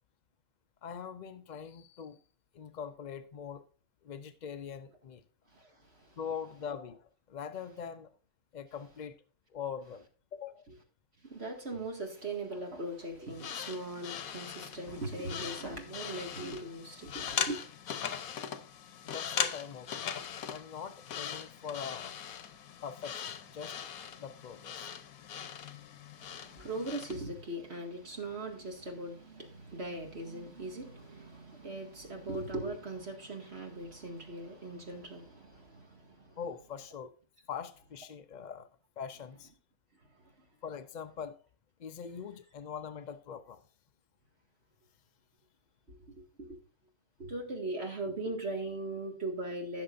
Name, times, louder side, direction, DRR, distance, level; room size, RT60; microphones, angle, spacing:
voice 1, 0.8-2.2 2.5-3.7 4.0-5.2 6.2-8.1 8.5-9.2 9.5-10.1 10.3-10.7 19.0-20.0 20.5-22.1 22.8-23.8 24.2-24.9 36.4-37.1 37.5-38.7 39.0-39.5 40.6-41.4 41.8-43.6, left 7 dB, 55° left, 0.5 m, -42 dB
voice 2, 5.5-6.2 11.2-17.6 26.1-36.4 40.1-40.5 45.9-46.6 47.2-49.8, right 2 dB, 50° right, 2.2 m, -40 dB
sound 1, 13.3-27.2, left 8 dB, 90° left, 1.3 m, -40 dB
16.0 x 6.7 x 2.5 m
omnidirectional pair, 1.4 m